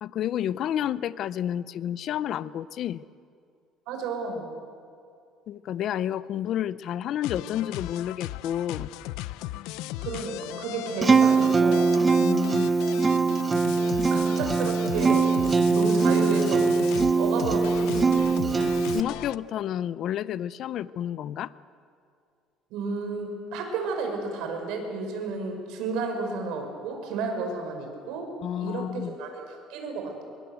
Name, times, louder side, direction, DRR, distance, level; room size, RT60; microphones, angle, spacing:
voice 1, 0.0-3.0 5.5-8.9 12.2-12.7 18.4-21.5 28.4-29.2, left 10 dB, 45° left, 16 dB, 0.5 m, -30 dB
voice 2, 3.9-4.5 10.0-11.9 14.1-15.3 15.7-16.7 17.2-18.8 22.7-30.2, right 4 dB, 75° right, 3 dB, 5.6 m, -32 dB
sound 1, 7.2-19.4, left 16 dB, 90° left, 0.6 m, -37 dB
Acoustic guitar, 11.0-19.0, right 4 dB, 15° right, 0.6 m, -22 dB
24.0 x 22.5 x 8.0 m, 2.4 s
cardioid pair, 160°, 0 cm